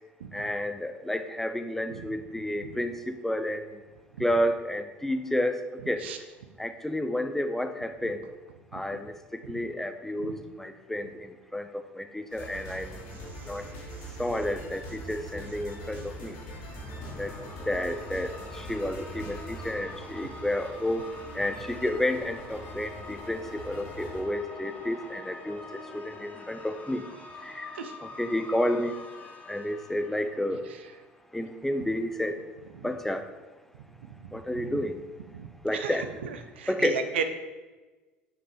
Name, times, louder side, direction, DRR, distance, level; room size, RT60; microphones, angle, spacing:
voice 1, 0.3-3.8 4.2-6.0 6.6-8.2 8.7-13.0 13.4-13.7 14.2-16.4 17.2-17.3 17.7-21.1 21.3-25.6 25.9-27.0 27.4-29.0 29.5-30.6 31.3-32.4 32.8-33.3 34.3-34.9 35.6-36.1 36.7-37.0, left 1 dB, 5° left, 8 dB, 0.9 m, -31 dB
sound 1, 12.3-24.2, equal, 70° left, 2.6 m, -43 dB
sound 2, 16.6-30.9, left 2 dB, 20° left, 2.0 m, -45 dB
voice 2, 36.6-37.2, right 7 dB, 80° right, 8 dB, 0.8 m, -32 dB
9.3 x 6.1 x 5.2 m, 1.2 s
hypercardioid pair, 65°, 6 cm